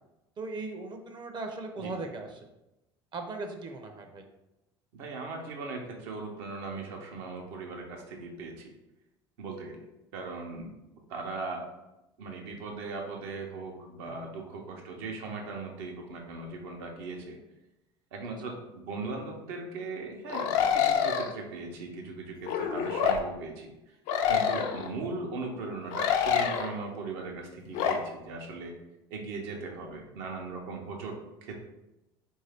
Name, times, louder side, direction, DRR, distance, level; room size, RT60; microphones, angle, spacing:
voice 1, 0.4-2.4 3.1-4.2 14.0-14.3 24.6-24.7, right 3 dB, 35° right, 4 dB, 0.6 m, -38 dB
voice 2, 4.9-8.7 9.4-9.9 10.1-10.7 11.1-11.7 12.2-17.4 18.1-23.7 24.3-28.8 29.1-31.5, right 3 dB, 70° right, 1 dB, 0.8 m, -39 dB
sound 1, 20.3-21.3 22.5-23.2 24.1-24.9 25.9-26.7 27.7-28.0, left 8 dB, 65° left, 0.5 m, -26 dB
3.7 x 2.7 x 3.4 m, 0.94 s
hypercardioid pair, 70°, 13 cm